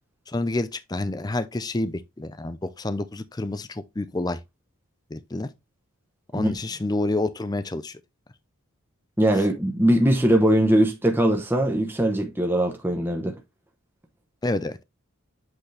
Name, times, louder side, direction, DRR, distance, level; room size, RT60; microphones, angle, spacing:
voice 1, 0.3-4.4 5.1-5.5 6.3-8.0 14.4-14.8, left 2 dB, 20° left, 0.4 m, -28 dB
voice 2, 9.2-13.3, right 1 dB, 10° right, 0.9 m, -21 dB
7.9 x 4.1 x 3.3 m
head